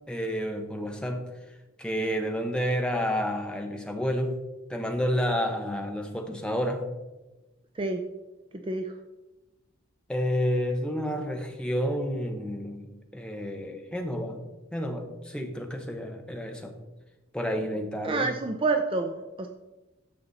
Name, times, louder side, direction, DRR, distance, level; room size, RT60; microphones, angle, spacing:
voice 1, 0.1-1.3 1.8-4.4 4.7-6.9 10.1-14.4 14.7-16.8 17.3-18.3, equal, 5° left, 3 dB, 0.9 m, -30 dB
voice 2, 8.6-8.9 18.0-19.5, right 3 dB, 25° right, 5 dB, 0.5 m, -28 dB
11.0 x 6.8 x 4.0 m, 1.1 s
head